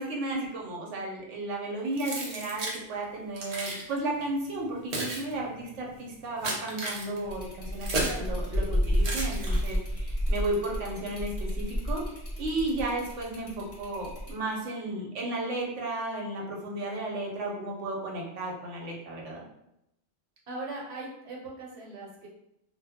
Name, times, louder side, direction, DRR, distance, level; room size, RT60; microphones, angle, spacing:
voice 1, 0.0-12.0 12.4-19.4, right 2 dB, 90° right, -1 dB, 1.0 m, -34 dB
Keys jangling, 2.0-2.8 3.4-3.8 4.6-8.3 9.0-9.9, right 2 dB, 50° right, 0.5 m, -34 dB
sound 1, 7.2-14.3, equal, 40° left, 0.5 m, -31 dB
voice 2, 8.0-8.3 20.5-22.3, right 2 dB, 65° right, -3 dB, 0.9 m, -39 dB
2.2 x 2.0 x 3.4 m, 0.82 s
omnidirectional pair, 1.2 m